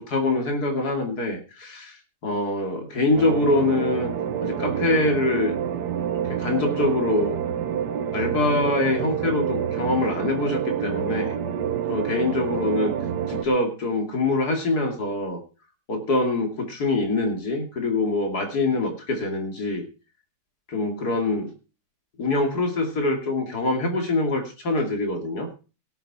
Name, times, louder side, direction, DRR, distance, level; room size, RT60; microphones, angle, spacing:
voice 1, 0.0-4.1 4.4-5.6 6.3-7.4 8.1-11.3 11.9-12.9 13.3-15.4 15.9-19.8 20.7-21.5 22.2-25.5, left 2 dB, 65° left, 3 dB, 3.2 m, -24 dB
sound 1, 3.1-13.5, right 8 dB, 80° right, 1.6 m, -28 dB
18.0 x 8.0 x 4.3 m, 0.33 s
omnidirectional pair, 1.8 m